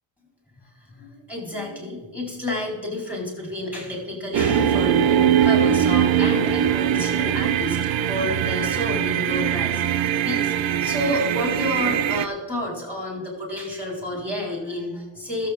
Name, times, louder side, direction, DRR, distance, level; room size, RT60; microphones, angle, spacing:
voice 1, 0.8-15.5, left 1 dB, 5° right, -2 dB, 4.5 m, -30 dB
sound 1, 4.3-12.3, right 9 dB, 80° right, 0.7 m, -21 dB
22.0 x 7.5 x 3.7 m, 1.3 s
wide cardioid pair, 150°, 45 cm